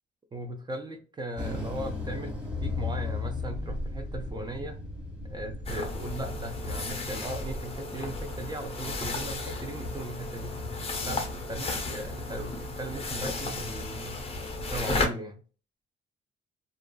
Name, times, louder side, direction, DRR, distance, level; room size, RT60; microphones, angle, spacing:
voice 1, 0.3-4.8 5.3-10.6 11.0-14.2 14.6-15.4, right 1 dB, 20° right, 4 dB, 0.6 m, -38 dB
sound 1, 1.4-7.6, left 3 dB, 5° right, 1.3 m, -35 dB
sound 2, 5.7-15.1, left 2 dB, 30° left, 0.6 m, -34 dB
2.5 x 2.3 x 2.2 m, 0.37 s
cardioid pair, 90°, 20 cm